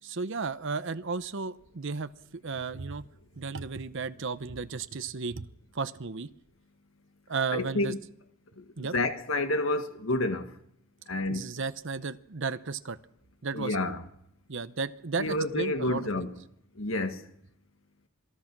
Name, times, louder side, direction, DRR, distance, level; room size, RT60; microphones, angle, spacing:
voice 1, 0.0-3.0 3.4-5.5 5.7-6.3 7.3-7.9 8.8-8.9 11.3-13.0 13.4-13.8 14.5-16.3, right 4 dB, 65° right, 0.9 m, -34 dB
voice 2, 7.5-8.0 8.6-10.5 11.1-11.5 13.5-14.0 15.2-16.3 16.7-17.2, left 2 dB, 75° left, 1.8 m, -29 dB
27.0 x 19.5 x 6.1 m
head